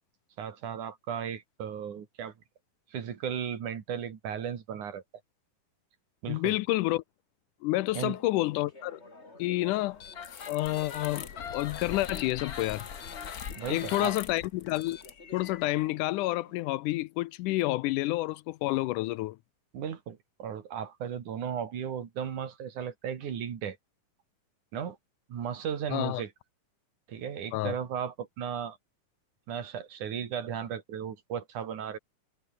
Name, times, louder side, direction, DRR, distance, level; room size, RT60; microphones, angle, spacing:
voice 1, 0.4-2.3 2.9-5.0 6.2-6.6 7.9-8.2 13.6-14.2 19.7-23.8 24.7-25.0 25.3-26.3 27.1-28.8 29.5-32.0, right 8 dB, 70° right, 3.8 m, -35 dB
voice 2, 6.3-7.0 7.6-9.0 9.4-10.0 10.5-12.9 13.7-15.0 15.3-19.4 25.9-26.2 27.5-27.8, left 18 dB, 80° left, 2.1 m, -29 dB
sound 1, 8.1-16.6, left 2 dB, 20° left, 4.1 m, -52 dB
sound 2, 10.0-15.9, left 7 dB, 60° left, 0.9 m, -41 dB
omnidirectional pair, 3.7 m